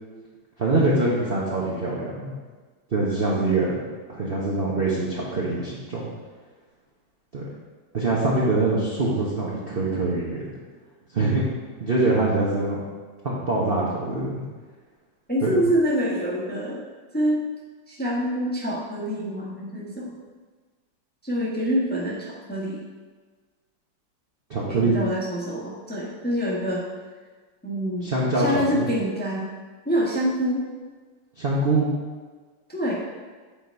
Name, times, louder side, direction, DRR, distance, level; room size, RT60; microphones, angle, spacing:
voice 1, 0.6-2.3 2.9-6.1 7.3-7.4 7.9-10.6 11.1-11.4 11.8-12.8 13.2-14.4 15.4-15.5 24.5-25.0 28.0-28.9 31.4-31.9, right 2 dB, 40° right, -6 dB, 0.9 m, -24 dB
voice 2, 15.3-16.8 17.1-17.4 17.9-20.1 21.2-22.8 24.7-26.8 27.6-28.1 28.4-29.5 29.8-30.6 32.7-33.0, equal, 5° left, -6 dB, 1.0 m, -26 dB
8.7 x 4.0 x 4.6 m, 1.4 s
omnidirectional pair, 2.2 m